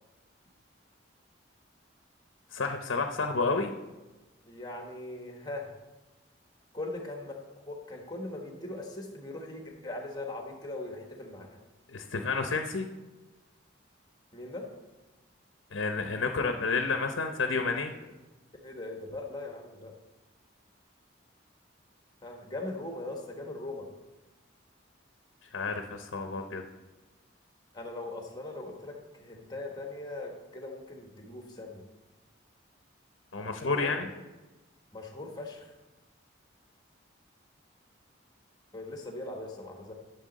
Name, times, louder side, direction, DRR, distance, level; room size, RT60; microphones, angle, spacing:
voice 1, 2.5-3.7 11.9-12.9 15.7-17.9 25.5-26.6 33.3-34.1, left 4 dB, 75° left, 5 dB, 0.7 m, -30 dB
voice 2, 4.5-5.7 6.7-11.6 14.3-14.7 18.6-19.9 22.2-23.9 27.7-31.8 33.6-34.0 34.9-35.7 38.7-39.9, left 2 dB, 20° left, 2 dB, 1.3 m, -40 dB
11.0 x 6.9 x 4.0 m, 1.1 s
head